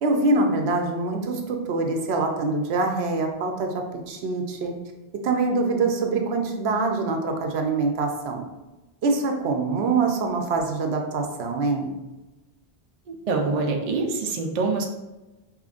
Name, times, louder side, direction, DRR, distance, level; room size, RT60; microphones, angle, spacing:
voice 1, 0.0-4.7 5.2-8.4 9.0-11.9, right 3 dB, 80° right, 3 dB, 0.9 m, -24 dB
voice 2, 13.1-14.9, right 3 dB, 50° right, 2 dB, 0.5 m, -25 dB
5.0 x 3.1 x 2.4 m, 1.1 s
omnidirectional pair, 1.1 m